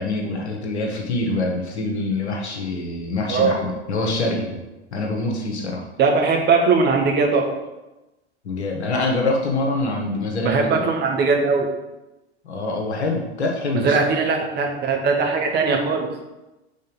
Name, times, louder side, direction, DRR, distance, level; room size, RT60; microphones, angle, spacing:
voice 1, 0.0-4.6 4.9-5.8 8.4-10.9 12.4-14.0, left 2 dB, 70° left, 1 dB, 1.2 m, -25 dB
voice 2, 6.0-7.5 10.4-11.7 13.7-16.1, right 4 dB, 30° right, 1 dB, 1.3 m, -20 dB
5.5 x 3.9 x 5.3 m, 1.0 s
figure-of-eight pair, 80°, 34 cm